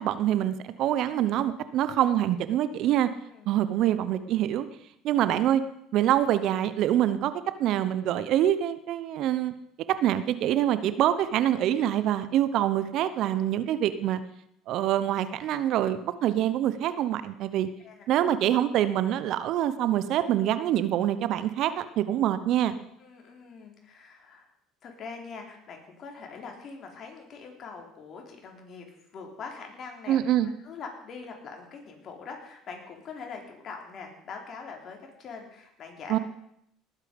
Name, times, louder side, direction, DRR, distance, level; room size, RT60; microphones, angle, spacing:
voice 1, 0.0-3.1 3.5-4.7 5.0-5.6 5.9-7.3 7.6-9.5 9.9-14.2 14.7-17.7 18.1-22.8 30.1-30.5 36.1-36.2, right 11 dB, 65° right, 13 dB, 0.9 m, -25 dB
voice 2, 23.0-24.5 24.8-30.2 30.6-36.2, left 5 dB, 50° left, 2 dB, 3.7 m, -43 dB
19.0 x 8.3 x 5.3 m, 0.74 s
supercardioid pair, 80°, 0 cm